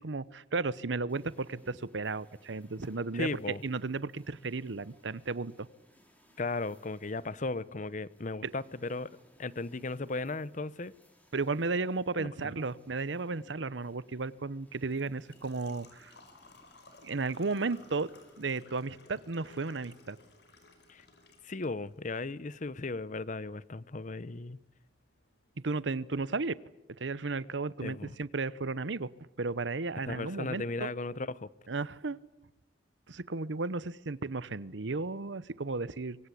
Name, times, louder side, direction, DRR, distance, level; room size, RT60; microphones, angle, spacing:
voice 1, 0.0-3.3 3.6-5.7 8.4-8.5 11.3-16.1 17.0-18.1 18.4-20.2 25.6-26.6 27.0-29.1 29.4-30.9 31.7-32.2 33.1-36.2, right 3 dB, 80° right, 18 dB, 0.9 m, -34 dB
sound 1, 1.1-18.6, equal, 10° left, 5.1 m, -64 dB
voice 2, 3.1-3.6 6.4-9.1 9.4-10.9 12.2-12.5 20.9-21.0 21.4-24.6 27.8-28.2 30.1-31.5, left 3 dB, 45° left, 19 dB, 0.8 m, -36 dB
Engine / Trickle dribble / Fill (with liquid), 14.3-26.2, left 2 dB, 65° left, 5.3 m, -60 dB
25.0 x 23.5 x 8.4 m, 1.0 s
head